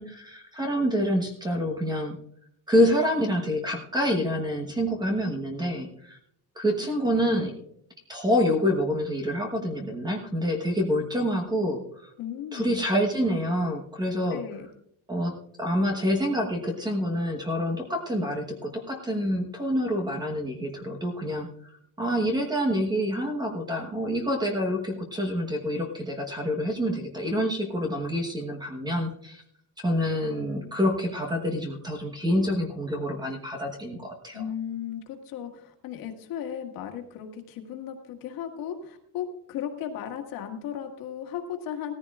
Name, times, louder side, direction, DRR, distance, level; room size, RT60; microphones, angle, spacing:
voice 1, 0.0-2.2 2.7-6.2 6.5-7.5 8.1-12.1 12.5-14.4 15.1-29.4 29.8-34.4, equal, 10° right, 2 dB, 1.1 m, -27 dB
voice 2, 12.2-12.8 14.3-14.7 34.3-41.9, left 9 dB, 60° left, 4 dB, 1.9 m, -35 dB
17.5 x 14.0 x 2.4 m, 0.71 s
cardioid pair, 180°, 39 cm